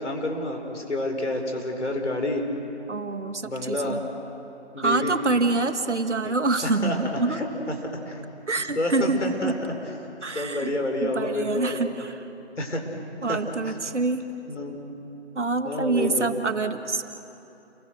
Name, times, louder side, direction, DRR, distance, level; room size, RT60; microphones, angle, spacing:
voice 1, 0.0-2.4 3.4-4.0 4.7-5.1 6.2-6.4 6.6-7.0 7.3-7.5 8.0-8.2 8.7-9.7 10.3-11.9 12.6-12.8 13.3-13.7 14.5-14.8 15.6-16.3, left 1 dB, 80° left, 3 dB, 5.1 m, -29 dB
voice 2, 2.9-4.0 4.8-7.4 8.5-9.6 10.2-10.7 11.0-12.3 13.2-14.3 15.4-17.0, right 3 dB, 85° right, 7 dB, 1.9 m, -26 dB
29.5 x 23.5 x 6.7 m, 2.9 s
figure-of-eight pair, 160°, 35 cm